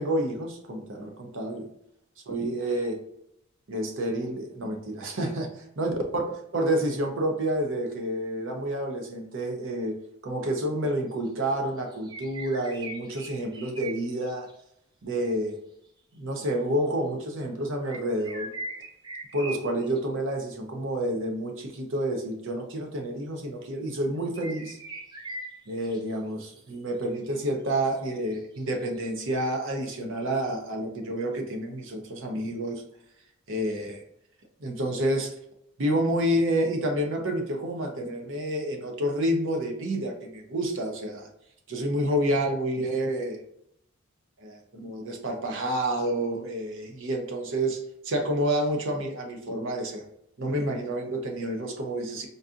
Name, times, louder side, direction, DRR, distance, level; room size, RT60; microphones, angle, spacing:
voice 1, 0.0-1.7 2.3-3.0 3.7-6.2 6.5-10.0 10.2-14.5 15.0-15.6 16.1-18.5 19.3-24.8 25.7-32.8 33.5-34.0 34.6-35.3 35.8-41.3 41.7-43.4 44.4-50.0 50.4-52.3, right 1 dB, 60° right, 3 dB, 0.7 m, -29 dB
sound 1, 11.3-11.4 11.8-14.6 16.4-16.5 17.8-20.0 24.2-26.0 26.4-26.6 27.0-27.1 27.3-27.4 27.7-27.8 28.3-29.1, right 2 dB, 20° right, 0.4 m, -41 dB
4.0 x 2.5 x 2.4 m, 0.75 s
head